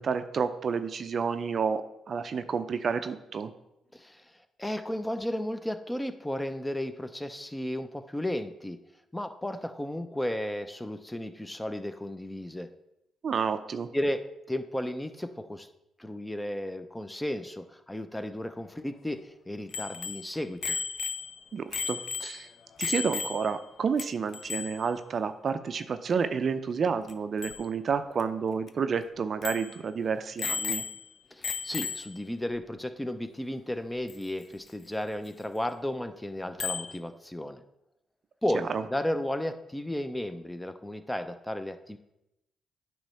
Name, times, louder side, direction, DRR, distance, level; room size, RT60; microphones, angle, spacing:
voice 1, 0.0-3.5 13.2-13.9 21.5-22.5 22.8-30.8 38.7-38.8, right 6 dB, 55° right, 11 dB, 0.4 m, -30 dB
voice 2, 3.9-4.2 4.6-8.8 9.1-12.7 13.9-14.2 14.5-15.7 16.0-20.8 31.3-37.6 38.4-42.0, left 1 dB, 10° left, 10 dB, 0.6 m, -34 dB
Bicycle bell, 19.7-23.7 24.0-24.1 24.3-24.9 27.1-27.2 27.4-27.6 28.2-28.3 28.7-28.8 29.4-29.8 30.4-31.1 31.4-32.2 34.1-34.2 36.6-37.0, left 5 dB, 55° left, 0.5 m, -34 dB
8.7 x 3.1 x 5.5 m, 0.87 s
hypercardioid pair, 50°, 0 cm